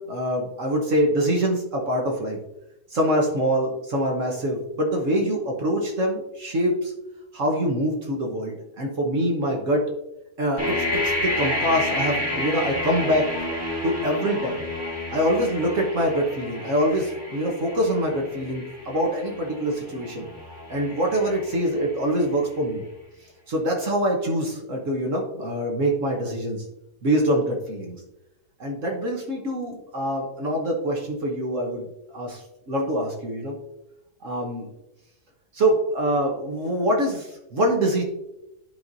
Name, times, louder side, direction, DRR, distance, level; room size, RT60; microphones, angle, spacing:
voice 1, 0.0-2.4 2.9-6.9 7.3-9.9 10.4-13.3 13.8-14.6 15.1-20.2 20.7-22.8 23.5-26.6 27.0-28.0 28.6-31.9 32.1-33.6 34.2-34.7 35.5-38.0, equal, 55° right, 0 dB, 1.4 m, -24 dB
sound 1, 10.6-22.4, left 1 dB, 15° right, 1.6 m, -31 dB
10.5 x 4.5 x 2.7 m, 0.90 s
omnidirectional pair, 1.7 m